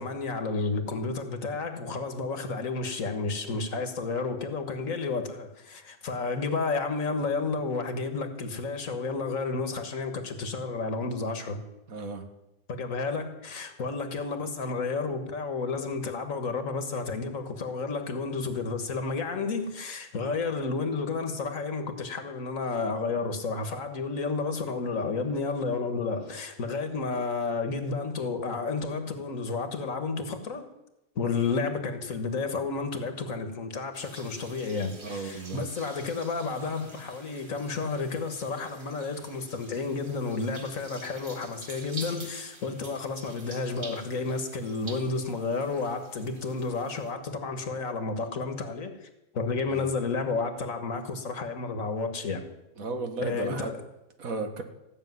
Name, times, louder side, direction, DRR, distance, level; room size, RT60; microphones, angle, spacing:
voice 1, 0.0-11.6 12.7-30.7 31.2-49.1 49.3-52.5 53.2-53.8, left 4 dB, 70° left, 1.9 m, -31 dB
voice 2, 11.9-12.3 35.0-35.6 49.7-49.8 52.8-53.7 54.2-54.6, right 3 dB, 80° right, 2.0 m, -34 dB
sound 1, 33.9-47.1, right 2 dB, 40° right, 2.2 m, -47 dB
16.0 x 6.7 x 9.4 m
omnidirectional pair, 1.4 m